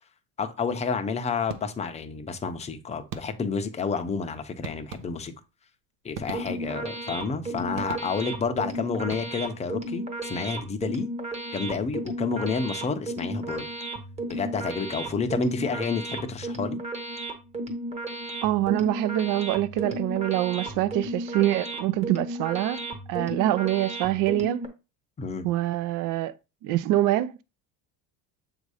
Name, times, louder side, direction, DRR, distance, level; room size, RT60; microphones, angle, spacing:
voice 1, 0.4-5.3 6.0-11.1 11.5-13.6 14.3-16.8 25.2-25.5, left 5 dB, 15° left, 0.6 m, -30 dB
sound 1, 1.5-2.1 3.1-3.7 4.6-5.5 6.1-6.9 7.8-8.5 9.0-9.7, right 7 dB, 80° right, 0.8 m, -41 dB
sound 2, 6.2-24.7, right 1 dB, 15° right, 1.0 m, -34 dB
voice 2, 18.4-22.8 23.1-24.7 25.4-26.3 26.6-27.4, right 14 dB, 55° right, 0.5 m, -25 dB
7.4 x 2.7 x 4.8 m
cardioid pair, 145°, 38 cm